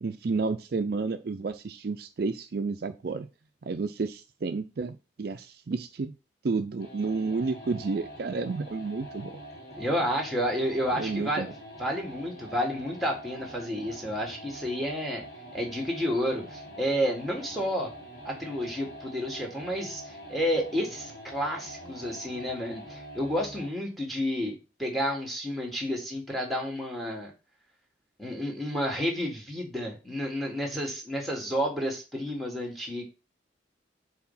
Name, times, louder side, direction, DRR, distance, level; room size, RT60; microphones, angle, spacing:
voice 1, 0.0-3.3 3.6-6.1 6.4-9.4 10.9-11.5, right 4 dB, 55° right, 8 dB, 0.4 m, -31 dB
sound 1, 6.8-23.8, equal, 50° left, 3.1 m, -45 dB
voice 2, 9.8-11.5 11.8-15.2 15.5-17.9 18.3-24.5 24.8-27.3 28.2-33.0, equal, ahead, 1 dB, 1.6 m, -30 dB
4.8 x 4.2 x 5.5 m, 0.30 s
head